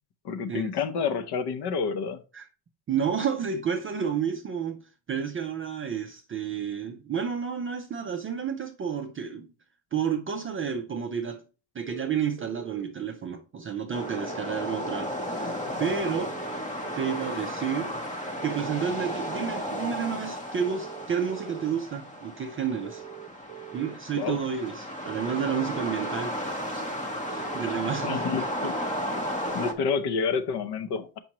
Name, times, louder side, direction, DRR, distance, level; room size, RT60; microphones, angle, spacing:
voice 1, 0.2-2.2 24.1-24.4 27.9-28.7 29.5-31.2, left 5 dB, 55° left, 0.8 m, -29 dB
voice 2, 2.9-4.8 5.1-9.5 9.9-11.4 11.7-16.3 17.0-18.0 18.4-23.0 23.7-26.4 26.7-26.9 27.3-28.3, right 7 dB, 30° right, 0.4 m, -30 dB
sound 1, 11.8-12.8 13.9-15.1 16.2-17.3 18.4-19.5 20.6-21.7 22.8-24.0 25.0-26.2 27.3-28.4, right 14 dB, 75° right, 0.7 m, -44 dB
sound 2, 13.9-29.7, equal, 15° left, 0.7 m, -34 dB
7.0 x 5.4 x 2.9 m
cardioid pair, 170°, 48 cm